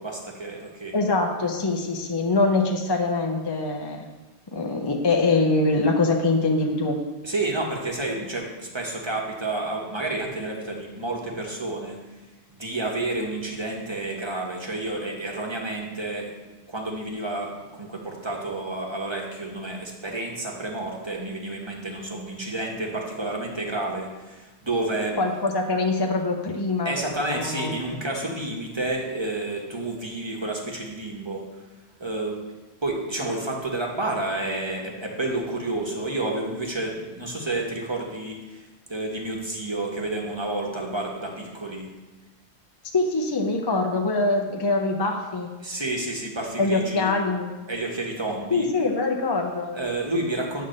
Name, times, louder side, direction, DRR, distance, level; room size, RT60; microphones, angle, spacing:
voice 1, 0.0-0.9 7.2-12.0 12.5-16.3 16.7-25.2 26.8-31.4 32.0-32.4 32.8-41.9 45.6-47.1 47.7-48.7 49.7-50.7, right 2 dB, 25° right, -1 dB, 1.2 m, -30 dB
voice 2, 0.9-4.1 4.5-7.0 25.2-26.9 27.3-27.7 42.9-45.5 46.6-47.5 48.5-49.7, left 3 dB, 30° left, 2 dB, 0.6 m, -23 dB
8.9 x 3.7 x 6.5 m, 1.2 s
omnidirectional pair, 1.2 m